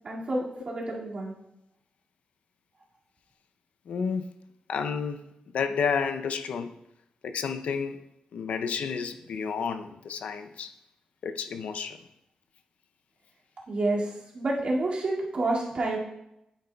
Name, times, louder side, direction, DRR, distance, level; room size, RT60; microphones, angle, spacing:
voice 1, 0.0-1.3 13.7-16.0, right 2 dB, 50° right, 2.1 m, -29 dB
voice 2, 3.9-4.3 4.7-5.2 5.5-6.7 7.2-8.0 8.3-10.7 11.2-12.0, left 6 dB, 80° left, 0.5 m, -30 dB
9.5 x 8.7 x 2.3 m
cardioid pair, 100°, 2 cm